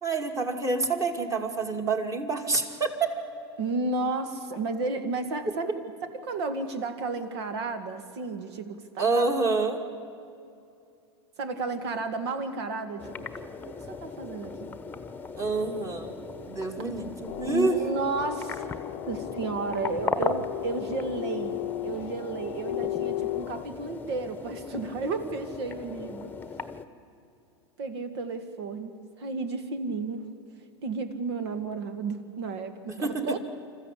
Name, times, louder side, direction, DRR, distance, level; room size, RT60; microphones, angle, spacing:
voice 1, 0.0-3.1 9.0-9.8 15.4-16.1 16.5-17.7 33.0-33.4, right 3 dB, 20° right, 4 dB, 2.4 m, -27 dB
voice 2, 3.6-5.7 6.2-9.4 11.4-14.8 17.4-18.7 19.1-26.3 27.8-30.3 30.8-33.4, right 3 dB, 70° right, 9 dB, 2.2 m, -32 dB
sound 1, 13.0-26.9, left 4 dB, 15° left, 1.1 m, -38 dB
sound 2, 17.3-23.6, left 16 dB, 65° left, 0.7 m, -35 dB
26.5 x 14.5 x 8.4 m, 2.6 s
hypercardioid pair, 115°, 15 cm